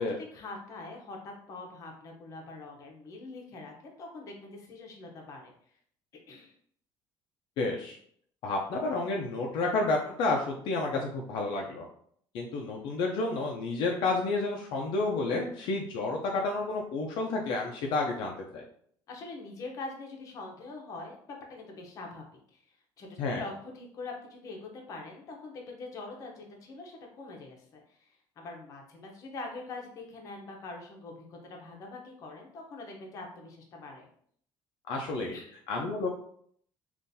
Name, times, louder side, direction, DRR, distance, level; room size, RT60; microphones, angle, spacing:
voice 1, 0.0-5.5 6.3-6.6 19.1-34.1 35.3-35.5, left 3 dB, 40° left, 1 dB, 0.8 m, -44 dB
voice 2, 7.6-8.0 8.4-11.9 12.3-18.7 23.2-23.4 34.9-35.4 35.7-36.1, left 3 dB, 65° left, 0 dB, 0.5 m, -30 dB
3.7 x 2.5 x 2.6 m, 0.63 s
cardioid pair, 160°, 9 cm